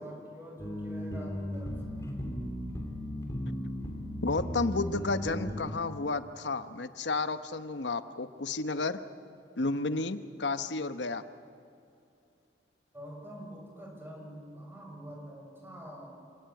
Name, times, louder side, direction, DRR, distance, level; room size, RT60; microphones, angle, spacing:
voice 1, 0.0-2.0 12.9-16.1, equal, 15° right, 0 dB, 5.7 m, -46 dB
sound 1, 0.6-5.7, equal, 20° left, 3.1 m, -36 dB
voice 2, 4.2-9.0 9.6-11.2, left 3 dB, 80° left, 11 dB, 1.0 m, -32 dB
28.0 x 17.5 x 9.3 m, 2.6 s
head